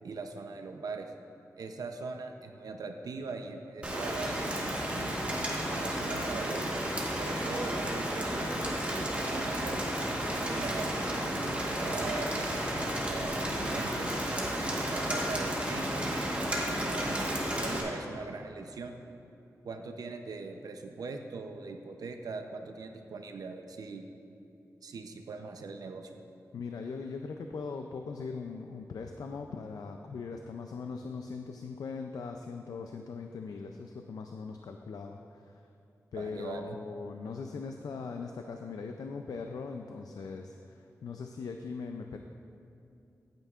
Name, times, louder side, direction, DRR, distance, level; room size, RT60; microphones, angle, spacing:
voice 1, 0.0-1.1 1.6-5.2 5.7-6.7 7.2-8.6 8.8-9.8 10.5-14.1 14.7-16.1 16.5-19.0 19.6-24.1 24.8-26.2 36.2-36.8, right 4 dB, 85° right, 5 dB, 0.6 m, -41 dB
Rain, 3.8-17.8, right 1 dB, 20° right, 1.3 m, -32 dB
voice 2, 26.5-35.5 36.1-42.2, left 4 dB, 90° left, 4 dB, 0.4 m, -40 dB
15.0 x 9.0 x 2.5 m, 2.8 s
wide cardioid pair, 115°, 6 cm